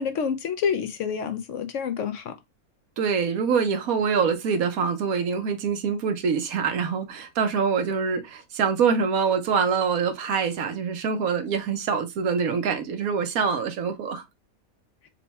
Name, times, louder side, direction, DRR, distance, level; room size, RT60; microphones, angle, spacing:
voice 1, 0.0-2.3, left 7 dB, 65° left, 0.8 m, -28 dB
voice 2, 3.0-14.2, right 6 dB, 75° right, 1.2 m, -25 dB
4.2 x 2.2 x 4.0 m
omnidirectional pair, 1.5 m